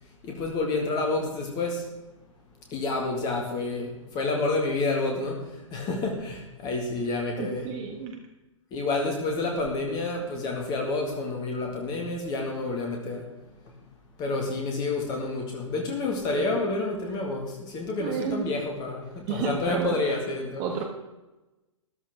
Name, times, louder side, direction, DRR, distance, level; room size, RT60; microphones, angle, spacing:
voice 1, 0.2-1.9 2.7-7.7 8.7-13.3 14.2-20.6, left 3 dB, 25° left, 1 dB, 2.1 m, -29 dB
voice 2, 7.4-8.2 16.3-16.4 18.0-18.5 19.3-19.9 20.6-20.8, right 7 dB, 30° right, 4 dB, 1.4 m, -31 dB
14.0 x 11.5 x 3.7 m, 1.0 s
figure-of-eight pair, 115°, 17 cm